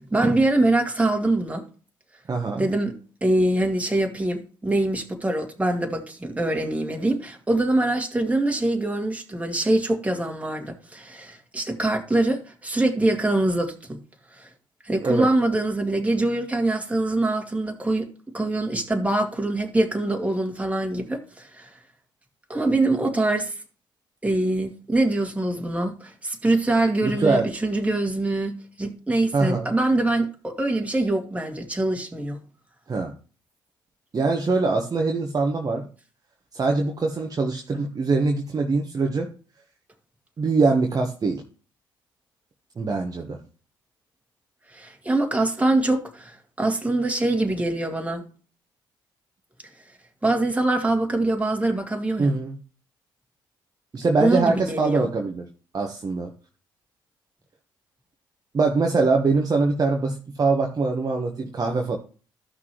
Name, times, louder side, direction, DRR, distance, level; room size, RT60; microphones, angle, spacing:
voice 1, 0.1-1.6 2.5-2.9 3.2-14.0 14.4-14.5 14.8-18.1 18.3-21.7 22.5-23.5 24.2-32.4 44.7-48.2 50.2-52.3 54.2-55.1, right 2 dB, 15° right, 2.2 m, -24 dB
voice 2, 2.3-2.6 15.0-15.3 27.0-27.5 29.3-29.7 32.9-33.1 34.1-35.8 36.5-39.3 40.4-41.4 42.8-43.4 52.2-52.6 53.9-55.5 55.7-56.3 58.5-62.0, right 3 dB, 35° right, 1.3 m, -23 dB
14.0 x 6.0 x 3.1 m
hypercardioid pair, 45°, 11 cm